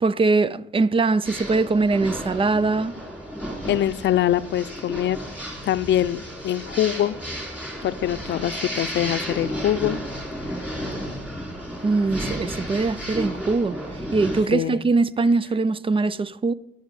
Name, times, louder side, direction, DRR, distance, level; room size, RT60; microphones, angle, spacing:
voice 1, 0.0-2.9 11.8-13.8 14.1-16.5, right 3 dB, 25° right, 0.5 m, -22 dB
sound 1, 1.2-14.4, equal, 5° right, 3.6 m, -33 dB
voice 2, 3.6-5.2 5.6-7.2 7.8-10.0 10.7-10.9 14.5-14.8, left 12 dB, 65° left, 0.6 m, -23 dB
10.5 x 6.3 x 7.9 m
cardioid pair, 90°, 20 cm